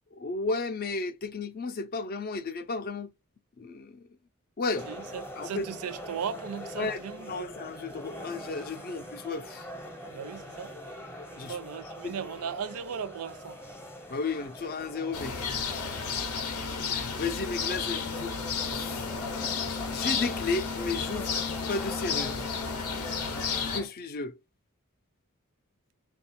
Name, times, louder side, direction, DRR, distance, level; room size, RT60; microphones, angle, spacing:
voice 1, 0.1-3.1 3.6-4.1 4.6-4.9 5.4-5.7 6.8-7.0 7.3-9.7 11.4-11.6 12.0-12.2 14.1-15.9 16.9-18.3 18.6-19.1 19.9-22.4 23.7-24.4, left 3 dB, 45° left, 0.4 m, -34 dB
sound 1, 4.7-23.9, left 1 dB, 10° left, 0.7 m, -43 dB
voice 2, 4.9-7.5 10.0-10.7 11.5-13.6, right 7 dB, 85° right, 0.4 m, -37 dB
sound 2, 15.1-23.8, left 5 dB, 90° left, 0.7 m, -32 dB
3.5 x 2.3 x 4.1 m
head